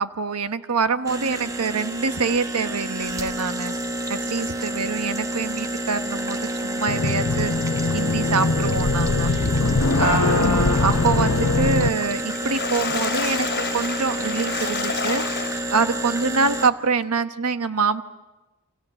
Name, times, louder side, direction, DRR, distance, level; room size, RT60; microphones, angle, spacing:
voice 1, 0.0-3.8 4.1-7.5 7.9-9.3 10.0-13.5 13.7-15.3 15.7-18.0, right 4 dB, 80° right, 9 dB, 1.1 m, -25 dB
sound 1, 1.1-16.7, right 1 dB, 15° right, 1.0 m, -29 dB
sound 2, 6.9-11.9, left 3 dB, 70° left, 1.0 m, -22 dB
Water / Splash splatter, 12.1-16.0 16.5-16.6 17.0-17.1, left 5 dB, 50° left, 2.7 m, -29 dB
29.5 x 26.5 x 7.0 m, 1.1 s
head